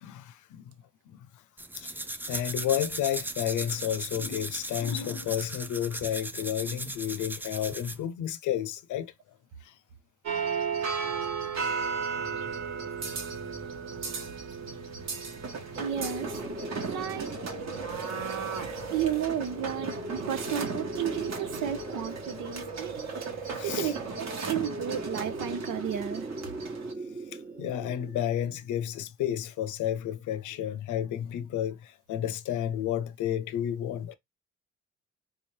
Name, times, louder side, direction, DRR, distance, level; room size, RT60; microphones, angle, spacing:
voice 1, 0.0-0.6 2.3-9.1 23.5-23.9 27.6-31.8 32.1-34.1, left 10 dB, 75° left, 0.6 m, -31 dB
sound 1, 1.6-8.1, right 1 dB, 5° right, 0.4 m, -37 dB
sound 2, 10.3-26.9, right 5 dB, 60° right, 1.2 m, -35 dB
voice 2, 15.7-16.4 16.9-17.3 18.9-26.3, right 10 dB, 85° right, 0.8 m, -33 dB
sound 3, 15.8-28.6, right 1 dB, 30° right, 1.0 m, -39 dB
3.9 x 2.8 x 3.2 m
cardioid pair, 90°, 30 cm